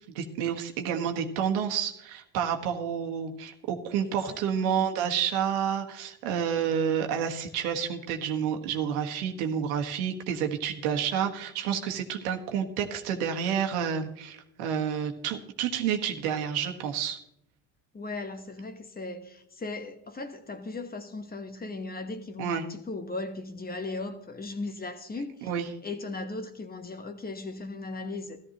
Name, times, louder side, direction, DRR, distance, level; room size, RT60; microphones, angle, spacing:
voice 1, 0.1-17.2 22.4-22.6 25.5-25.7, right 8 dB, 75° right, 1.6 m, -29 dB
voice 2, 4.0-5.0 17.9-28.4, left 3 dB, 20° left, 1.2 m, -37 dB
14.0 x 13.0 x 3.0 m
hypercardioid pair, 80°, 44 cm